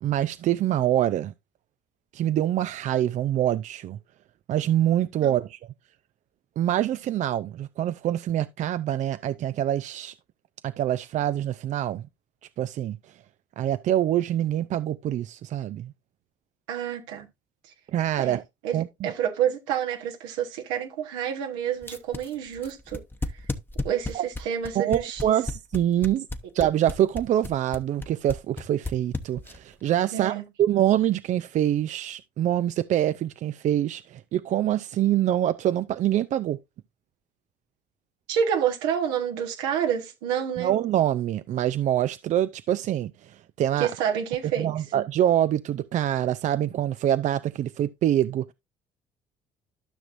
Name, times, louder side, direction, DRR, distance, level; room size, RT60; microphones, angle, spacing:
voice 1, 0.0-1.3 2.1-4.0 4.5-5.6 6.6-10.1 10.6-12.0 12.6-13.0 13.6-15.9 17.9-18.4 18.7-19.1 24.1-24.2 24.8-26.3 26.5-36.6 40.6-43.9 44.6-48.5, right 12 dB, 55° right, 0.4 m, -25 dB
voice 2, 16.7-17.3 18.2-23.0 23.3-23.5 23.8-25.3 30.1-30.4 38.3-40.7 43.8-44.7, right 8 dB, 90° right, 1.2 m, -28 dB
sound 1, 21.8-29.7, left 2 dB, 15° left, 1.0 m, -32 dB
12.5 x 5.9 x 2.5 m
supercardioid pair, 70°, 15 cm